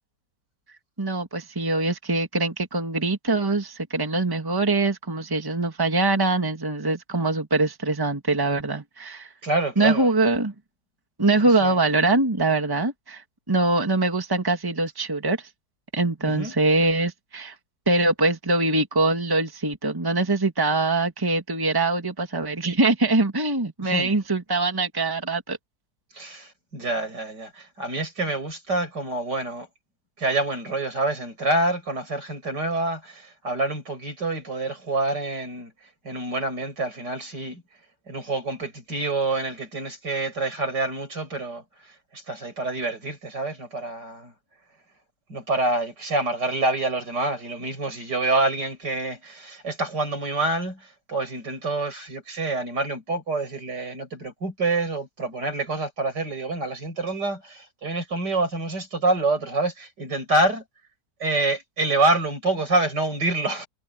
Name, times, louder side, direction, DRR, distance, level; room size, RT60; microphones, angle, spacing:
voice 1, 1.0-9.3 9.8-10.5 11.2-15.4 15.9-17.6 17.9-25.6, right 2 dB, 15° right, 1.9 m, -23 dB
voice 2, 9.4-10.1 11.4-11.8 16.2-16.5 23.8-24.2 26.1-29.7 30.2-35.7 36.0-37.6 38.1-41.6 42.1-44.3 45.3-60.6 61.2-63.7, right 2 dB, 85° right, 7.9 m, -27 dB
omnidirectional pair, 1.8 m